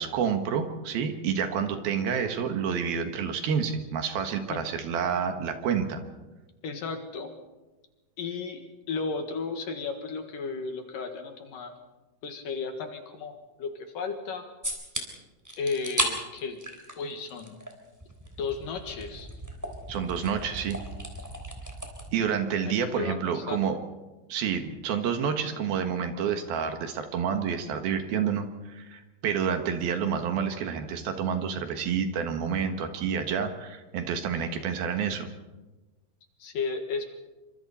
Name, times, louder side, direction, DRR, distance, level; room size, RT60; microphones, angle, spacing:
voice 1, 0.0-6.0 19.9-20.9 22.1-23.8 24.3-35.3, right 7 dB, 70° right, 6 dB, 3.1 m, -29 dB
voice 2, 6.6-7.3 8.2-8.6 8.9-11.7 12.2-13.7 13.9-14.4 15.6-16.6 17.0-17.6 18.4-19.3 22.6-23.6 34.3-34.4 36.4-37.0, left 4 dB, 60° left, 5 dB, 3.0 m, -34 dB
sound 1, 14.6-15.0 15.4-16.1 16.4-17.7 18.0-22.1, right 1 dB, 5° right, 2.7 m, -35 dB
27.5 x 25.0 x 4.3 m, 1.2 s
omnidirectional pair, 4.8 m